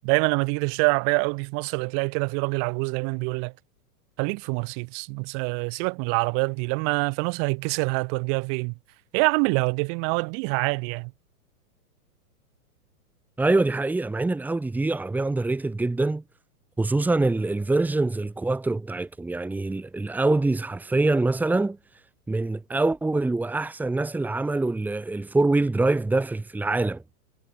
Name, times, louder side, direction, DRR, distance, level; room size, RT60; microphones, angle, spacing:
voice 1, 0.0-3.5 4.2-8.7 9.1-11.1, right 40 dB or more, 30° right, 7.4 m, -25 dB
voice 2, 13.4-16.2 16.8-21.8 22.3-27.0, right 2 dB, 5° right, 4.5 m, -24 dB
hypercardioid pair, 170°, 47 cm